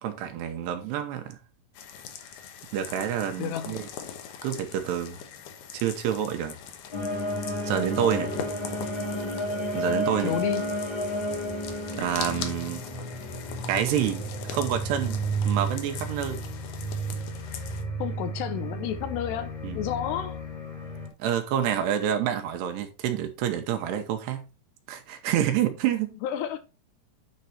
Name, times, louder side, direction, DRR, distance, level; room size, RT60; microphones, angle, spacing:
voice 1, 0.0-1.4 2.7-3.8 4.4-5.2 5.7-6.6 7.6-8.3 9.7-10.4 11.9-12.8 13.7-14.3 14.5-15.2 15.5-16.4 19.6-19.8 21.2-24.4 24.9-26.2, right 10 dB, 85° right, 3.1 m, -28 dB
sound 1, 1.7-17.8, left 8 dB, 70° left, 2.3 m, -42 dB
voice 2, 3.4-3.9 10.2-10.7 18.0-20.4 26.2-26.6, left 9 dB, 85° left, 3.0 m, -31 dB
sound 2, 6.9-21.1, right 1 dB, 15° left, 1.0 m, -32 dB
9.7 x 4.7 x 4.1 m
omnidirectional pair, 4.8 m